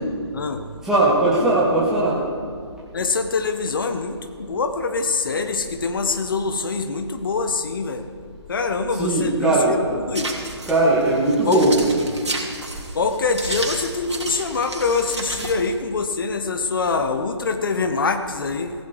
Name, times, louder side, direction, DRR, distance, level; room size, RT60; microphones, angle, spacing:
voice 1, 0.8-2.2 9.0-9.7 10.7-11.9, right 2 dB, 5° right, -8 dB, 2.3 m, -18 dB
voice 2, 2.9-8.0 8.5-10.4 11.4-11.6 12.9-18.7, left 4 dB, 50° left, 8 dB, 1.2 m, -24 dB
sound 1, 10.1-15.7, right 2 dB, 70° right, 3.1 m, -32 dB
17.0 x 15.5 x 4.8 m, 2.1 s
figure-of-eight pair, 140°, 15 cm